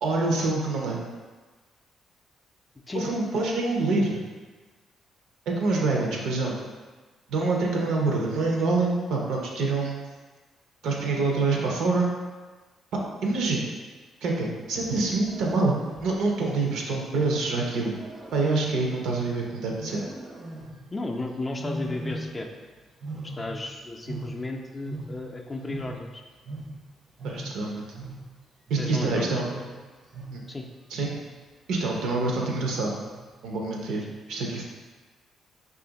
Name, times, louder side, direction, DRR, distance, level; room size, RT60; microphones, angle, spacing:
voice 1, 0.0-1.0 2.9-4.2 5.5-6.6 7.3-10.0 10.8-12.1 12.9-13.6 14.2-15.7 16.0-17.9 18.3-20.0 27.2-27.8 28.7-29.5 30.3-30.4 30.9-31.1 31.7-32.9 33.4-34.6, right 3 dB, 85° right, -1 dB, 0.6 m, -26 dB
Wild animals, 14.6-16.4 17.4-19.3 19.8-21.0 21.6-22.6 22.9-25.4 25.7-30.6 30.9-31.4 31.8-32.3 33.0-33.4, right 1 dB, 35° right, 0.5 m, -39 dB
voice 2, 20.9-22.5 23.2-26.2 28.8-29.7 30.5-30.7 34.1-34.2, left 2 dB, 25° left, 2 dB, 0.4 m, -34 dB
2.7 x 2.5 x 3.9 m, 1.3 s
cardioid pair, 90°, 0 cm